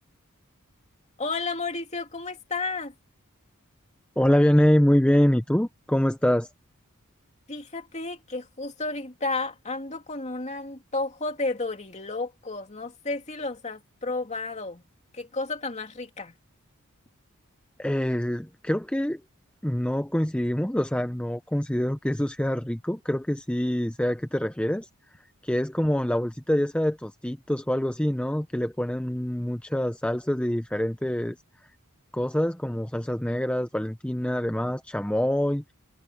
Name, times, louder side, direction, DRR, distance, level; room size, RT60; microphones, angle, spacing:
voice 1, 1.2-2.9 7.5-14.8 15.1-16.3, left 3 dB, 30° left, 2.8 m, -32 dB
voice 2, 4.2-6.5 17.8-19.2 19.6-24.9 25.4-31.4 32.1-35.6, equal, 5° left, 0.7 m, -25 dB
head